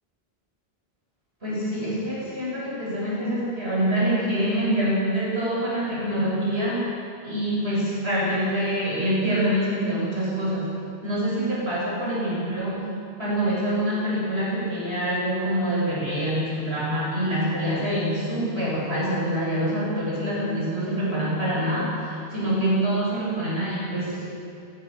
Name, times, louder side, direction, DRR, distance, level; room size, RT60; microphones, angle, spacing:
voice 1, 1.4-6.9 7.2-10.7 11.0-12.9 13.2-24.2, right 1 dB, 90° right, -6 dB, 8.4 m, -25 dB
27.5 x 17.5 x 7.4 m, 2.6 s
omnidirectional pair, 1.1 m